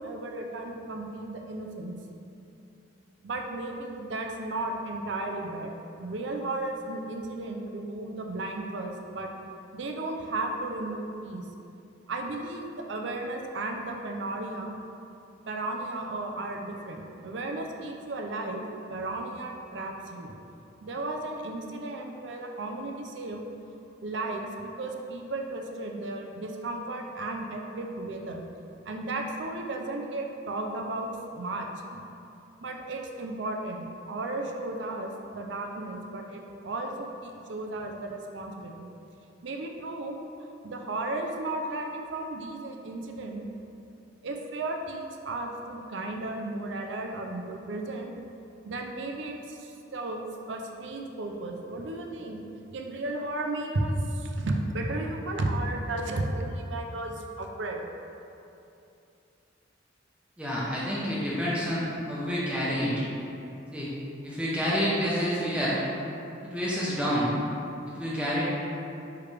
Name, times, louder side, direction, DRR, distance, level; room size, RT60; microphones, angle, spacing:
voice 1, 0.0-1.9 3.2-5.7 6.0-9.3 9.7-11.5 12.1-14.7 15.5-18.6 18.9-20.3 20.8-23.4 24.0-28.4 28.8-32.0 32.6-38.9 39.4-40.2 40.6-43.4 44.2-48.1 48.6-52.4 52.7-57.9, right 2 dB, 70° right, 2 dB, 0.6 m, -34 dB
voice 2, 60.4-62.9 63.7-63.9 64.2-65.8 66.4-67.3 68.0-68.4, equal, 5° right, -7 dB, 0.9 m, -28 dB
9.4 x 3.4 x 3.3 m, 2.7 s
head